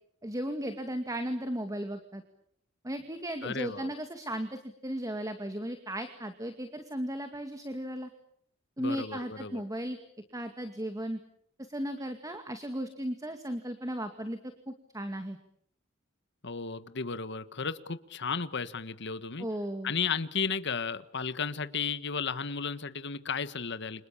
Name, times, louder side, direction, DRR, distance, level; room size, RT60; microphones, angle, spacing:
voice 1, 0.2-2.2 2.8-8.1 8.8-10.0 10.3-11.2 11.7-14.4 14.7-15.4 19.4-19.9, right 1 dB, 20° right, 7 dB, 2.3 m, -35 dB
voice 2, 3.4-3.9 8.8-9.6 16.4-19.5 19.8-24.1, left 5 dB, 60° left, 12 dB, 1.5 m, -34 dB
29.5 x 26.5 x 7.2 m, 0.70 s
head